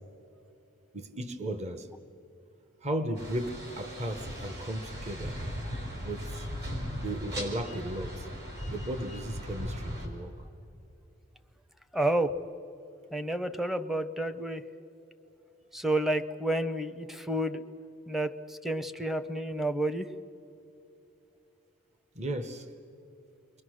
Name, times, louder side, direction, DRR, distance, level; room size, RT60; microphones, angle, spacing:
voice 1, 0.9-1.9 2.8-5.4 6.0-6.5 6.9-8.3 8.7-10.5 22.1-22.7, right 1 dB, 35° right, 8 dB, 1.0 m, -35 dB
sound 1, 3.2-10.1, equal, 55° right, 5.5 m, -38 dB
voice 2, 11.9-12.3 13.1-14.6 15.7-17.6 18.1-20.1, right 1 dB, ahead, 11 dB, 0.7 m, -30 dB
29.0 x 22.0 x 6.4 m, 2.8 s
head